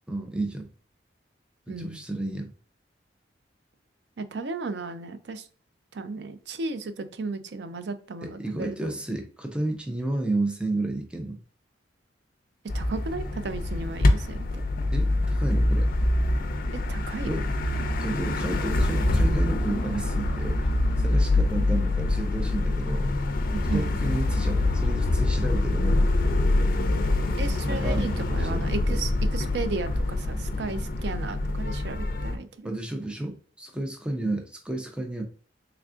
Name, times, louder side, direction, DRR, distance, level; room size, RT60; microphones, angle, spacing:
voice 1, 0.1-0.7 1.7-2.5 8.2-11.4 14.9-15.9 17.2-17.5 18.0-20.7 21.0-23.1 23.5-26.1 27.6-29.0 32.6-35.2, right 2 dB, 5° right, 3 dB, 0.5 m, -32 dB
voice 2, 1.7-2.0 4.2-5.5 5.9-8.9 12.7-14.6 16.9-17.4 23.7-24.0 27.4-32.7 34.2-34.3, right 3 dB, 65° right, 10 dB, 0.5 m, -34 dB
sound 1, 12.7-32.4, left 2 dB, 50° left, 0.5 m, -25 dB
3.6 x 3.4 x 2.4 m, 0.43 s
head